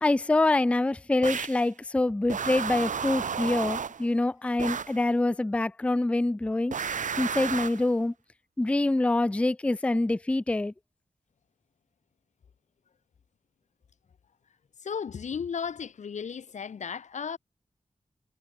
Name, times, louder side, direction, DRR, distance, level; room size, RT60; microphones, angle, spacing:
voice 1, 0.0-6.8 7.2-8.1 8.6-10.7, left 2 dB, 10° left, 0.4 m, -25 dB
sound 1, 1.2-1.7 2.3-4.1 4.6-5.0 6.7-7.9, right 6 dB, 85° right, 1.1 m, -32 dB
voice 2, 14.8-17.4, left 6 dB, 70° left, 0.6 m, -34 dB
wide cardioid pair, 95°, 13 cm